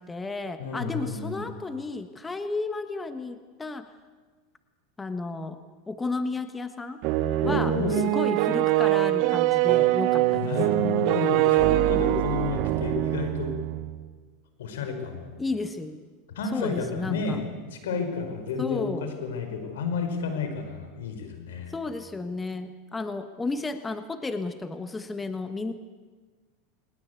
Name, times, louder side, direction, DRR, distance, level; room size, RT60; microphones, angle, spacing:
voice 1, 0.0-3.9 5.0-5.6 5.9-7.0 7.4-10.5 15.4-16.0 16.5-17.4 18.6-19.1 21.7-25.7, left 3 dB, 15° left, 9 dB, 1.3 m, -32 dB
voice 2, 0.6-1.4 7.4-8.0 10.3-13.5 14.6-15.4 16.3-21.7, left 5 dB, 90° left, 6 dB, 5.1 m, -31 dB
sound 1, 7.0-14.0, right 16 dB, 55° right, 1.0 m, -23 dB
21.0 x 20.0 x 8.3 m, 1.4 s
supercardioid pair, 130°, 0 cm